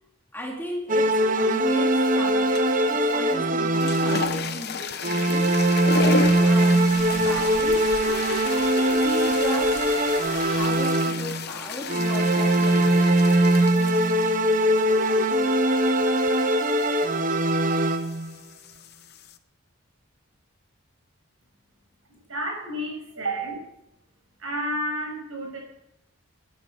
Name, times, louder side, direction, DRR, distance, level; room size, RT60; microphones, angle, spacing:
voice 1, 0.3-5.5 5.9-7.9 8.6-9.9 10.3-13.4, equal, 10° left, -1 dB, 2.4 m, -36 dB
sound 1, 0.9-4.6 5.0-11.5 11.9-18.3, right 1 dB, 40° right, 1.0 m, -21 dB
sound 2, 2.6-2.9 3.6-19.4, left 5 dB, 50° left, 0.9 m, -34 dB
sound 3, 5.5-10.7, left 4 dB, 75° left, 1.9 m, -41 dB
voice 2, 22.1-23.6 24.4-25.6, equal, 70° right, 0 dB, 6.5 m, -31 dB
19.5 x 9.9 x 5.6 m, 0.87 s
head